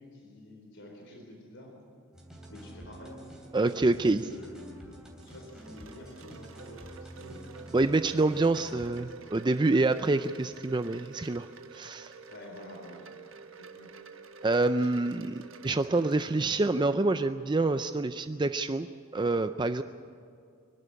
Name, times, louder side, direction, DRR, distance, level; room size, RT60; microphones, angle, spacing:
voice 1, 0.0-1.7 2.5-3.2 4.0-5.0 5.2-7.4 9.0-9.3 12.3-13.1 13.6-13.9 14.8-14.9, left 1 dB, 55° left, 1 dB, 4.2 m, -48 dB
sound 1, 2.1-9.0, right 1 dB, 5° right, 3.2 m, -49 dB
voice 2, 3.5-4.2 7.7-11.5 11.7-12.1 14.4-18.9 19.1-19.8, right 2 dB, 20° right, 10 dB, 0.4 m, -27 dB
Wind chime, 4.8-17.0, right 4 dB, 65° right, 1.3 m, -50 dB
25.0 x 11.5 x 9.9 m, 2.3 s
head